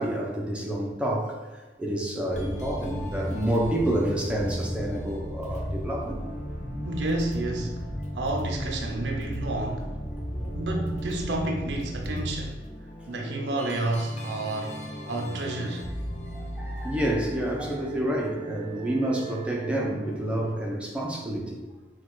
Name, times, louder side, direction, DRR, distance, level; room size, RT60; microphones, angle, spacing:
voice 1, 0.0-1.4 1.8-6.2 10.3-10.6 16.3-21.6, right 1 dB, 5° right, -2 dB, 0.6 m, -29 dB
sound 1, 2.3-20.5, equal, 40° left, 0.6 m, -35 dB
voice 2, 6.8-7.8 8.1-9.9 10.5-12.6 13.1-15.9, right 2 dB, 85° right, 2 dB, 0.5 m, -30 dB
4.4 x 2.3 x 4.4 m, 1.3 s
head